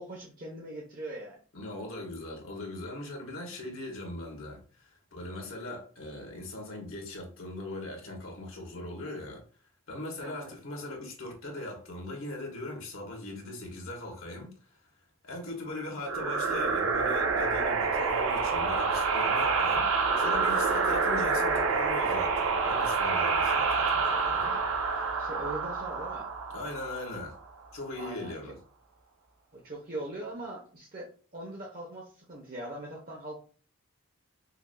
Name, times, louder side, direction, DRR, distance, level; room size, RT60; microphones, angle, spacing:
voice 1, 0.0-1.4 10.2-10.5 24.4-24.6 24.9-26.3 27.9-28.4 29.5-33.4, right 1 dB, 40° right, 0.9 m, -41 dB
voice 2, 1.5-9.4 9.9-14.8 15.2-24.5 26.5-27.4 27.7-28.6, left 2 dB, 75° left, 1.5 m, -40 dB
sound 1, 16.1-27.4, right 4 dB, 75° right, 0.6 m, -27 dB
5.7 x 2.6 x 2.2 m
head